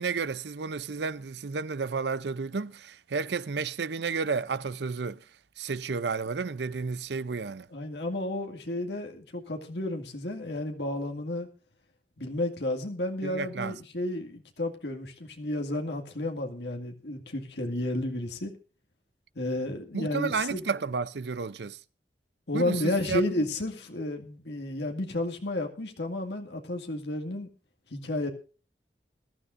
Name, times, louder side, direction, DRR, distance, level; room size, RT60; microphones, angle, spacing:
voice 1, 0.0-5.2 5.6-7.7 13.2-13.8 19.9-21.8 22.5-23.2, right 5 dB, 75° right, 0.6 m, -32 dB
voice 2, 7.7-11.5 12.2-18.5 19.4-20.6 22.5-27.5 27.9-28.3, left 1 dB, 75° left, 2.1 m, -32 dB
21.5 x 12.5 x 2.6 m
head